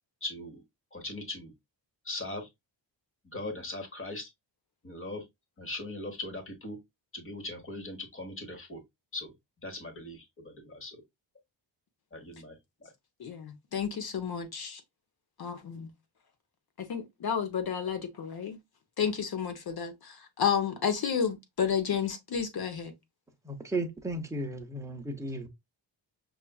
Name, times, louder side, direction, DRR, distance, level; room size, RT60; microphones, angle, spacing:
voice 1, 0.2-0.6 0.9-1.5 2.0-2.5 3.3-4.3 4.8-5.2 5.6-6.8 7.1-8.8 9.1-9.3 9.6-11.0 12.1-12.9, left 2 dB, 30° left, 1.1 m, -39 dB
voice 2, 13.2-14.8 15.4-15.9 16.8-18.6 19.0-22.9, left 7 dB, 55° left, 0.8 m, -31 dB
voice 3, 23.5-25.5, right 2 dB, 5° right, 0.6 m, -34 dB
5.6 x 2.4 x 2.3 m
wide cardioid pair, 145°, 46 cm